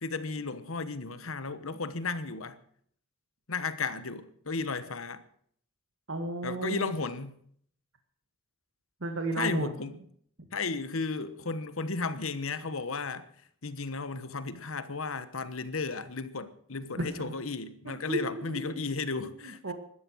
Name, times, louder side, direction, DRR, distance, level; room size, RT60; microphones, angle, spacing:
voice 1, 0.0-2.6 3.5-5.2 6.4-7.4 9.4-10.0 10.5-13.3 13.6-19.7, left 4 dB, 75° left, 1.2 m, -34 dB
voice 2, 6.1-6.9 9.0-9.7 16.9-17.3 17.8-18.7 19.4-19.7, right 2 dB, 65° right, 1.7 m, -33 dB
16.5 x 12.5 x 6.3 m
head